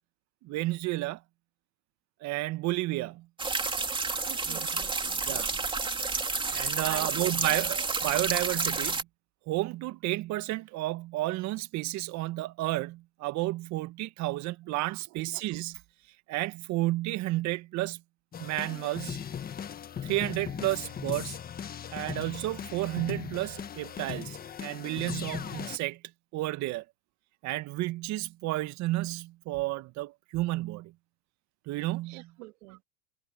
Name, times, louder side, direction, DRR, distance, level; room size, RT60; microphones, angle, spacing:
voice 1, 0.4-1.2 2.2-3.3 4.5-4.8 5.3-5.5 6.5-9.1 9.5-15.8 16.3-18.0 18.4-19.2 20.0-21.4 21.9-26.0 26.3-26.8 27.4-30.9 31.7-32.3, right 18 dB, 50° right, 1.8 m, -32 dB
sound 1, 3.4-9.0, right 4 dB, 15° right, 2.9 m, -30 dB
voice 2, 4.3-5.2 6.8-7.1 7.5-7.7 15.1-15.3 32.1-32.8, right 26 dB, 65° right, 3.1 m, -46 dB
sound 2, 18.3-25.8, left 8 dB, 25° left, 1.6 m, -38 dB
supercardioid pair, 115°, 36 cm